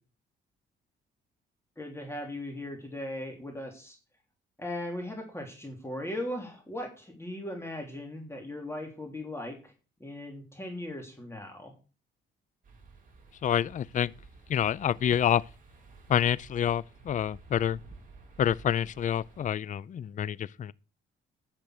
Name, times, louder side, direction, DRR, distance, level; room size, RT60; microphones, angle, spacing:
voice 1, 1.8-4.0 4.6-9.7 10.0-11.7, left 1 dB, 15° left, 3.2 m, -38 dB
sound 1, 12.6-19.5, right 4 dB, 40° right, 6.2 m, -52 dB
voice 2, 13.4-14.1 14.5-15.4 16.1-17.8 18.4-20.7, left 9 dB, 40° left, 0.4 m, -27 dB
10.5 x 7.4 x 6.6 m
cardioid pair, 90°, 20 cm